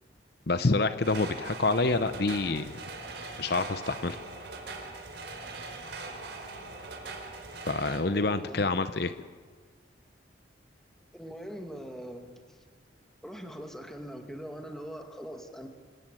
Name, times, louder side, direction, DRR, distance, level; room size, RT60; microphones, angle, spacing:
voice 1, 0.5-2.6 3.4-4.2 7.7-9.1, left 3 dB, 55° left, 11 dB, 0.8 m, -27 dB
sound 1, 1.0-8.0, right 3 dB, 65° right, 4.6 m, -41 dB
voice 2, 8.1-8.9 11.1-12.6 13.2-15.7, equal, ahead, 4 dB, 2.4 m, -42 dB
27.0 x 17.0 x 9.1 m, 1.5 s
head